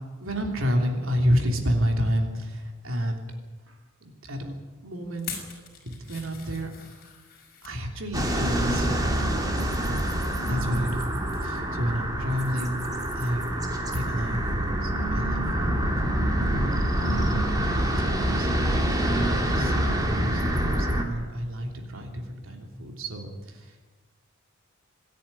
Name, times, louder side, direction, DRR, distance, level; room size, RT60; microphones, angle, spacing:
voice 1, 0.2-3.2 3.7-4.6 4.8-5.3 5.8-6.7 7.6-9.3 10.5-11.1 11.4-13.5 13.9-16.2 16.5-16.7 17.0-18.5 19.0-19.7 20.0-23.9, equal, 70° right, 2 dB, 3.2 m, -30 dB
sound 1, 5.1-7.8 8.4-8.9 9.3-11.0 11.3-11.5 11.9-12.0, left 7 dB, 45° left, 5.6 m, -44 dB
sound 2, 8.1-21.0, right 1 dB, 20° right, 3.1 m, -26 dB
26.5 x 10.5 x 9.6 m, 1.3 s
head